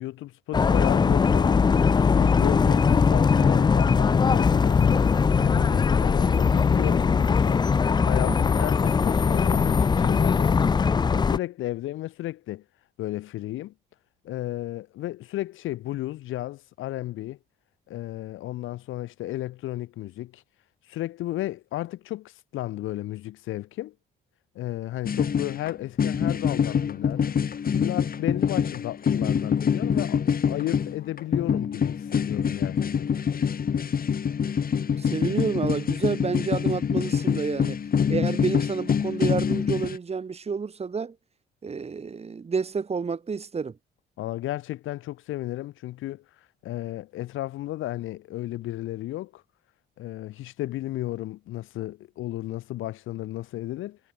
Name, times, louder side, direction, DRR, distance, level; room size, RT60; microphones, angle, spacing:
voice 1, 0.0-1.6 2.1-7.7 8.0-10.6 11.1-12.6 13.0-13.7 14.2-17.4 17.9-20.4 20.9-23.9 24.5-27.4 27.7-30.2 30.5-33.1 44.2-46.2 46.6-49.4 50.0-54.0, left 15 dB, 90° left, 3.3 m, -33 dB
sound 1, 0.5-11.4, left 5 dB, 20° left, 0.4 m, -20 dB
sound 2, 25.0-25.7 26.0-40.0, left 7 dB, 45° left, 3.1 m, -25 dB
voice 2, 35.0-37.8 38.1-41.1 41.6-43.7, right 5 dB, 30° right, 1.4 m, -29 dB
cardioid pair, 90°, 20 cm